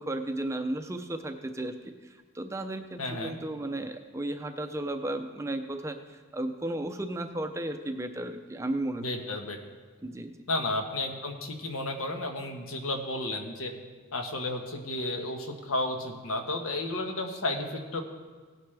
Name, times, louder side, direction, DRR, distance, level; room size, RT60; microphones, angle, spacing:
voice 1, 0.0-9.0 10.0-10.4, right 1 dB, 15° right, 6 dB, 0.5 m, -34 dB
voice 2, 3.0-3.4 9.0-9.6 10.5-13.7 14.1-18.0, left 2 dB, 80° left, 4 dB, 1.3 m, -32 dB
17.0 x 9.2 x 3.4 m, 1.4 s
head